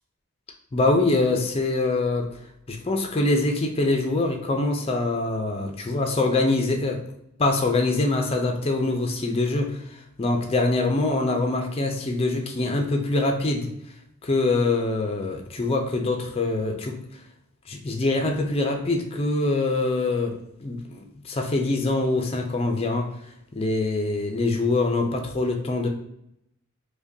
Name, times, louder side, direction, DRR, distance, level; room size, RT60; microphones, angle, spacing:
voice 1, 0.7-2.3 2.7-7.0 7.4-9.8 10.2-13.7 14.2-17.0 17.7-23.1 23.5-25.9, left 2 dB, 25° left, 3 dB, 0.4 m, -24 dB
4.9 x 2.2 x 2.6 m, 0.79 s
head